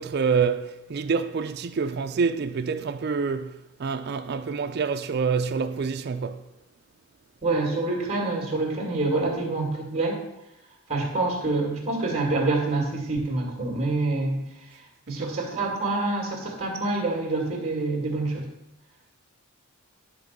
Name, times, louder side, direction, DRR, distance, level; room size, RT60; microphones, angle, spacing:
voice 1, 0.0-6.5 15.1-15.3, right 5 dB, 45° right, 0.3 m, -27 dB
voice 2, 7.4-10.2 10.9-14.4 15.1-18.4, right 2 dB, 25° right, 2.1 m, -26 dB
10.5 x 3.5 x 6.6 m
head